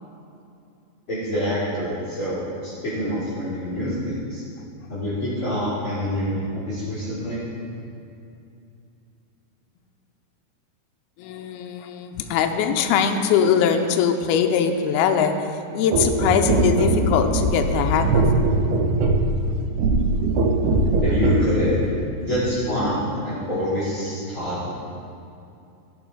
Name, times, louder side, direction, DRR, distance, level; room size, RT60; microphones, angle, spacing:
voice 1, 1.1-4.4 4.9-7.5 21.0-24.7, equal, 35° left, -10 dB, 3.3 m, -26 dB
voice 2, 11.2-18.5, left 7 dB, 85° left, 5 dB, 2.3 m, -22 dB
sound 1, 15.9-21.5 22.4-22.5, right 2 dB, 75° right, 2.4 m, -21 dB
16.0 x 6.0 x 4.9 m, 2.6 s
omnidirectional pair, 5.1 m